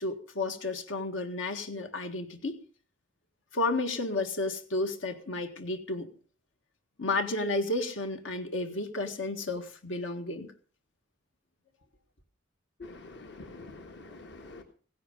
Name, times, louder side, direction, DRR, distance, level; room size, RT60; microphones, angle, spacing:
voice 1, 0.0-2.6 3.5-6.1 7.0-10.5, left 2 dB, 80° left, 1.8 m, -32 dB
voice 2, 12.8-14.6, left 3 dB, 60° left, 1.5 m, -46 dB
16.5 x 11.0 x 5.2 m
head